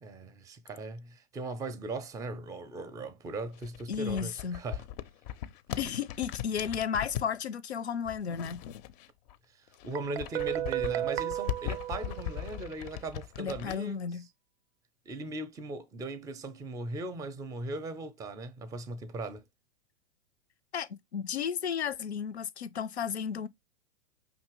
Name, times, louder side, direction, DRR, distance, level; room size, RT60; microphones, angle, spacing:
voice 1, 0.0-4.8 9.5-14.2 15.1-19.4, right 2 dB, 10° right, 0.5 m, -39 dB
sound 1, 3.5-7.3 8.0-9.4 9.7-13.8, left 11 dB, 40° left, 0.5 m, -39 dB
voice 2, 3.9-4.6 5.8-8.6 13.4-14.3 20.7-23.5, left 7 dB, 90° left, 0.7 m, -33 dB
Guitar, 10.0-12.7, right 13 dB, 75° right, 0.5 m, -34 dB
5.4 x 2.9 x 3.0 m
hypercardioid pair, 110°, 32 cm